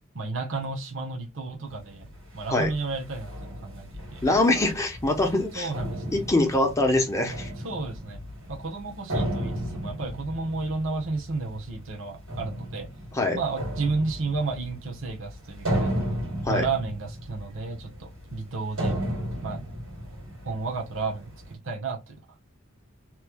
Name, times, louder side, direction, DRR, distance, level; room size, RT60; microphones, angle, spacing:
voice 1, 0.1-2.1 2.3-4.2 5.5-6.2 7.6-8.2 8.5-12.9 13.3-15.9 16.5-19.0 19.4-19.6 20.4-22.1, right 3 dB, 65° right, 0.9 m, -32 dB
sound 1, 1.7-21.5, equal, 85° right, 1.8 m, -35 dB
voice 2, 4.2-5.7 6.1-7.5 13.1-13.4 16.4-16.6, left 2 dB, 15° left, 0.7 m, -23 dB
3.1 x 2.2 x 3.4 m
head